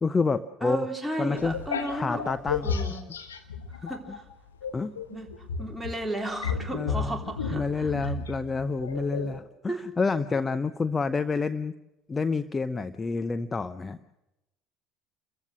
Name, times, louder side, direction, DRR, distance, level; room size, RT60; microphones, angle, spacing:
voice 1, 0.0-0.9 1.2-1.5 1.9-2.7 4.1-4.2 4.7-4.9 6.7-7.2 7.5-11.7 12.1-14.0, left 4 dB, 25° left, 13 dB, 0.7 m, -28 dB
voice 2, 0.6-2.2 2.6-3.0 3.8-4.2 5.1-5.3 5.6-8.1 9.7-9.8, right 1 dB, 5° right, 1 dB, 3.5 m, -34 dB
sound 1, 1.4-4.2 4.6-9.4, left 5 dB, 85° left, 1.3 m, -33 dB
28.5 x 14.5 x 6.3 m, 0.93 s
figure-of-eight pair, 60°, 0 cm